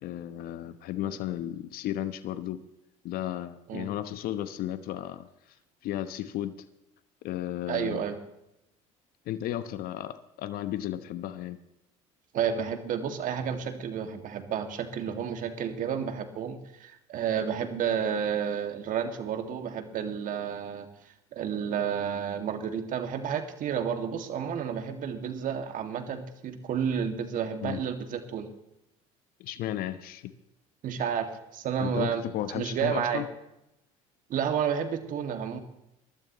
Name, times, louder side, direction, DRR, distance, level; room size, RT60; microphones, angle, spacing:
voice 1, 0.0-2.6 3.0-5.3 5.8-6.5 7.2-8.0 9.3-11.6 27.6-27.8 29.4-30.3 31.8-33.3, left 12 dB, 60° left, 12 dB, 1.1 m, -34 dB
voice 2, 7.7-8.2 12.3-20.9 21.3-28.5 30.8-33.2 34.3-35.6, right 7 dB, 50° right, 6 dB, 2.2 m, -31 dB
23.0 x 12.5 x 3.1 m, 0.87 s
hypercardioid pair, 80°, 17 cm